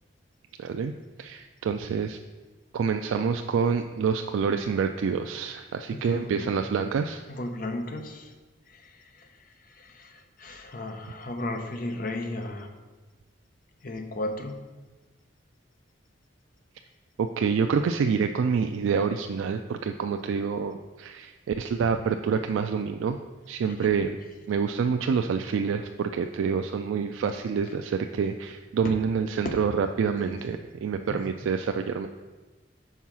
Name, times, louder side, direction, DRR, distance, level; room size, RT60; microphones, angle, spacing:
voice 1, 0.6-0.9 1.2-2.2 2.7-7.2 17.2-23.2 23.5-24.2 24.5-32.1, right 6 dB, 80° right, 6 dB, 0.3 m, -27 dB
voice 2, 5.9-6.7 7.3-8.3 8.7-9.3 9.6-12.7 13.8-14.6 23.7-23.9 28.8-29.0 29.4-29.6 31.1-31.2, left 1 dB, 45° left, 5 dB, 0.7 m, -35 dB
5.6 x 4.7 x 6.0 m, 1.2 s
head